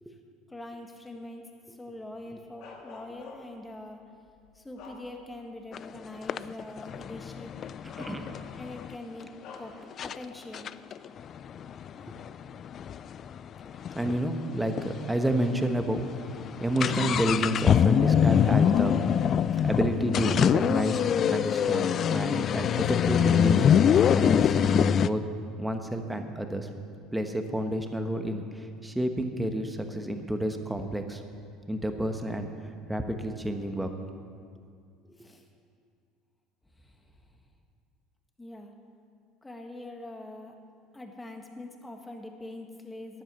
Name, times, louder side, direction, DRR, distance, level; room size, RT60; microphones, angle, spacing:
voice 1, 0.5-4.0 4.5-7.6 8.6-9.3 9.6-10.7 35.2-35.5 36.7-37.3 38.4-38.7 39.4-40.6 40.9-43.2, left 1 dB, 10° left, 3 dB, 1.6 m, -43 dB
Bark, 2.6-3.7 4.3-5.5 5.9-6.1 7.2-7.4 7.9-8.7 9.4-9.8, left 4 dB, 65° left, 2.0 m, -47 dB
sound 1, 5.7-5.8 6.3-8.9 9.5-9.6 10.0-10.2 10.5-14.2 14.5-14.6 14.8-14.9 15.5-15.6 15.9-25.1, left 8 dB, 45° left, 0.3 m, -24 dB
voice 2, 7.8-8.3 12.1-12.2 13.9-19.0 19.6-21.0 21.3-23.7 24.1-25.2 25.6-26.7 27.1-31.2 31.7-33.9, right 1 dB, 5° right, 6 dB, 1.2 m, -30 dB
12.5 x 9.1 x 6.9 m, 2.2 s
supercardioid pair, 100°, 0 cm